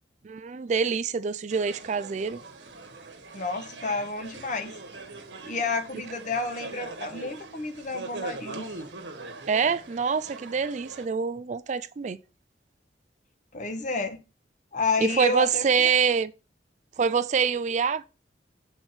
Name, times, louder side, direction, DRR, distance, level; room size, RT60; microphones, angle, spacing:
voice 1, 0.2-2.4 9.5-12.2 15.0-16.3 17.0-18.1, right 6 dB, 40° right, 0.4 m, -25 dB
sound 1, 1.5-11.1, right 3 dB, 90° right, 1.3 m, -41 dB
voice 2, 3.3-4.7 5.4-8.7 13.5-14.2 14.7-15.9, left 3 dB, 45° left, 1.2 m, -30 dB
7.2 x 4.6 x 5.6 m
head